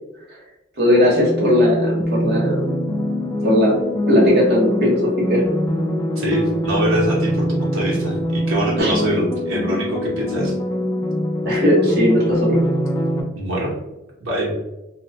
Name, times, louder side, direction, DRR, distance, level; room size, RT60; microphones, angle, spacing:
voice 1, 0.8-2.6 3.4-3.7 4.1-5.0 5.3-5.4 8.8-8.9 11.5-12.6, left 1 dB, 55° right, -4 dB, 0.9 m, -17 dB
sound 1, 1.2-13.2, equal, 20° left, 0.4 m, -23 dB
voice 2, 6.2-10.6 13.4-13.7 14.2-14.5, equal, 85° right, -4 dB, 0.7 m, -23 dB
2.8 x 2.1 x 2.6 m, 0.98 s
head